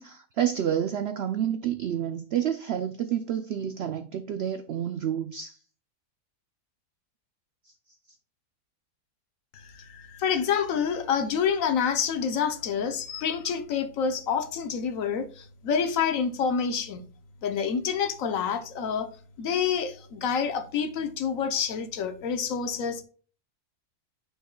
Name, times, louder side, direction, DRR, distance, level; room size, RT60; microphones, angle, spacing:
voice 1, 0.0-5.6, right 10 dB, 90° right, 0.5 m, -29 dB
voice 2, 9.5-17.0 17.4-19.1 19.4-23.0, left 7 dB, 65° left, 1.1 m, -28 dB
9.2 x 4.7 x 2.3 m
omnidirectional pair, 1.6 m